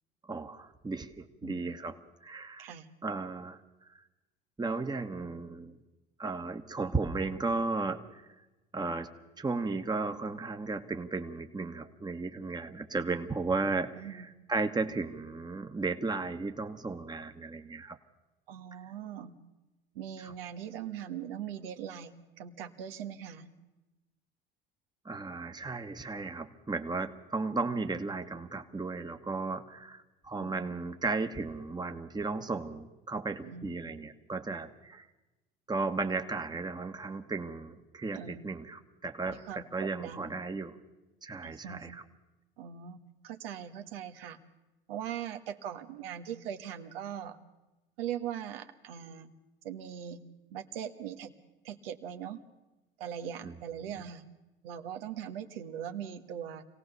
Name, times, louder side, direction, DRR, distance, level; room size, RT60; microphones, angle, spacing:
voice 1, 0.2-2.7 3.0-3.6 3.9-4.0 4.6-5.8 6.2-8.2 8.7-9.1 9.4-18.0 20.2-20.3 25.0-35.0 35.7-40.8 41.2-42.0 53.4-53.5 53.8-54.1, right 3 dB, 15° right, 7 dB, 1.4 m, -35 dB
voice 2, 18.5-19.3 19.9-23.5 30.4-30.9 33.4-33.8 38.1-38.4 39.3-40.3 41.4-41.8 42.6-44.4 44.9-47.4 48.0-49.3 49.6-50.2 50.5-51.3 51.6-52.4 53.0-54.2 54.6-56.6, right 9 dB, 75° right, 8 dB, 1.4 m, -40 dB
26.0 x 17.0 x 6.8 m, 1.1 s
hypercardioid pair, 70°, 29 cm